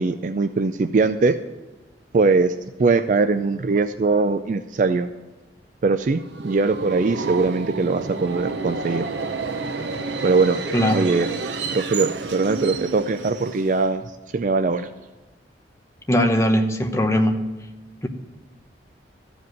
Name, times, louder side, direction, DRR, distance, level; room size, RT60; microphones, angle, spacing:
voice 1, 0.0-1.4 2.1-2.5 2.8-5.1 5.8-9.1 10.2-10.6 10.9-11.3 11.7-14.9, right 4 dB, 45° right, 10 dB, 0.4 m, -21 dB
Subway metro underground, 6.2-13.9, right 4 dB, 80° right, 0.8 m, -30 dB
voice 2, 10.7-11.1 16.1-17.4, equal, 15° left, 4 dB, 0.9 m, -20 dB
14.0 x 5.1 x 9.3 m, 1.2 s
head